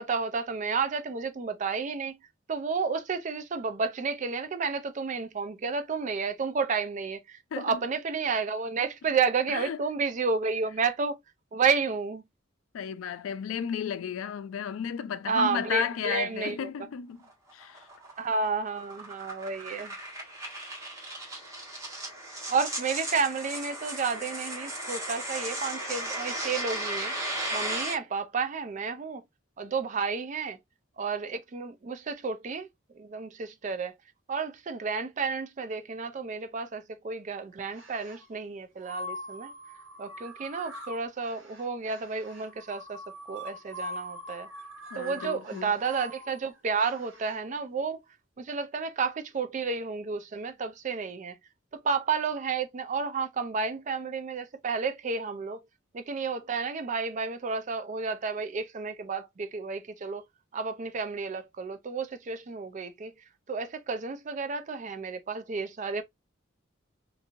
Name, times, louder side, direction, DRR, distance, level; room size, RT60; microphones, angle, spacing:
voice 1, 0.0-2.2 2.5-11.2 11.5-12.2 15.3-16.7 18.2-20.0 22.5-27.1 27.5-29.2 29.6-30.6 31.0-32.7 33.0-33.9 34.3-39.5 40.0-43.0 43.3-44.5 45.0-48.0 48.4-51.4 51.7-55.6 55.9-60.2 60.5-63.1 63.5-66.0, right 5 dB, 40° right, 0.4 m, -31 dB
voice 2, 7.5-7.8 9.5-9.8 12.7-17.2 17.5-17.9 44.9-45.7, left 7 dB, 85° left, 0.4 m, -33 dB
sound 1, 17.2-27.9, right 1 dB, 15° right, 1.2 m, -36 dB
sound 2, 37.7-38.3 38.8-47.4, equal, 85° right, 1.2 m, -43 dB
2.9 x 2.6 x 2.4 m
head